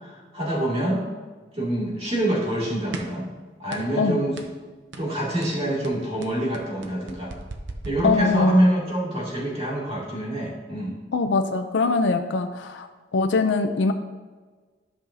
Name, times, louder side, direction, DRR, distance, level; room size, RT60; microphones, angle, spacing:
voice 1, 0.0-1.1 1.6-3.3 3.6-4.4 5.0-7.3 7.8-11.0, right 1 dB, 35° right, -5 dB, 2.2 m, -25 dB
sound 1, 2.9-3.3 3.7-4.0 4.4-4.6 4.9-5.1 5.4-8.7, right 2 dB, 75° right, 0.7 m, -38 dB
voice 2, 8.0-8.6 11.1-12.9 13.1-13.9, left 4 dB, 75° left, 7 dB, 0.5 m, -22 dB
12.5 x 5.5 x 2.7 m, 1.4 s
head